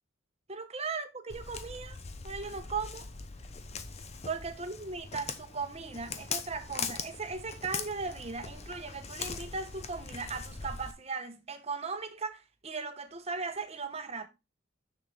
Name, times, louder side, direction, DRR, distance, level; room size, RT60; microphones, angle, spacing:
voice 1, 0.5-2.0 2.2-3.1 4.3-14.3, right 4 dB, 30° right, 1.0 m, -38 dB
Walk footsteps, 1.3-10.9, left 5 dB, 30° left, 0.7 m, -41 dB
6.8 x 6.6 x 3.4 m
head